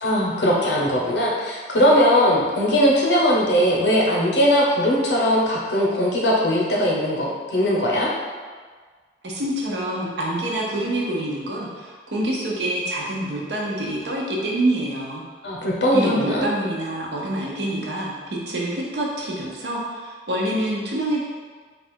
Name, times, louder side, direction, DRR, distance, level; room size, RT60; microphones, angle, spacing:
voice 1, 0.0-8.1 15.4-16.5, equal, 85° left, -3 dB, 0.9 m, -20 dB
voice 2, 9.2-15.2 15.9-21.2, right 1 dB, 75° right, -3 dB, 0.8 m, -26 dB
3.4 x 2.4 x 4.4 m, 1.5 s
head